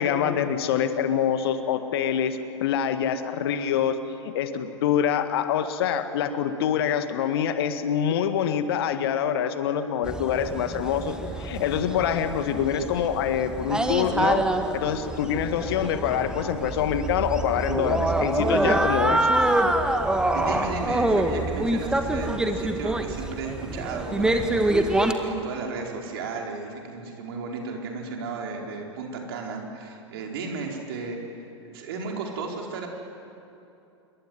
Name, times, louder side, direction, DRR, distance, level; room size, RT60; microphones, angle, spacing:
voice 1, 0.0-4.0 4.2-14.5 14.7-19.3, left 8 dB, 55° left, 9 dB, 1.9 m, -25 dB
sound 1, 10.0-25.1, right 1 dB, 5° right, 1.9 m, -26 dB
voice 2, 20.3-32.9, right 4 dB, 55° right, 1 dB, 4.8 m, -34 dB
27.5 x 23.0 x 9.4 m, 2.8 s
figure-of-eight pair, 95°, 15 cm